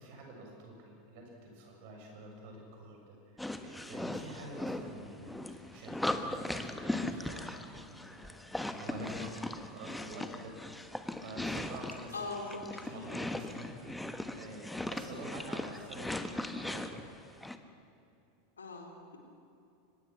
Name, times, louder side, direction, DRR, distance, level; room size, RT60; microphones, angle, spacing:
voice 1, 0.0-10.6 11.2-12.2 12.5-17.1, right 1 dB, 55° right, 1 dB, 7.0 m, -47 dB
sound 1, 3.4-17.6, left 1 dB, 5° left, 1.4 m, -39 dB
voice 2, 12.1-12.8 18.6-19.2, left 3 dB, 80° left, 2 dB, 3.9 m, -41 dB
24.0 x 21.0 x 7.4 m, 2.6 s
figure-of-eight pair, 85°, 0 cm